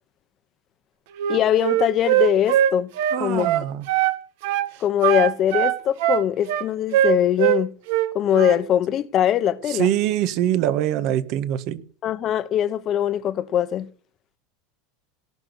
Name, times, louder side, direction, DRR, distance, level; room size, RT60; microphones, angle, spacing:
Wind instrument woodwind instrument, 1.2-4.2 4.4-4.7 5.0-7.6 7.9-8.6, right 12 dB, 70° right, 1.6 m, -21 dB
voice 1, 1.3-2.9 3.2-3.5 4.8-7.7 8.1-9.9 12.0-13.9, left 10 dB, 35° left, 1.2 m, -22 dB
voice 2, 3.1-3.8 9.7-11.8, right 12 dB, 50° right, 1.6 m, -23 dB
18.0 x 6.3 x 8.2 m
supercardioid pair, 140°, 0 cm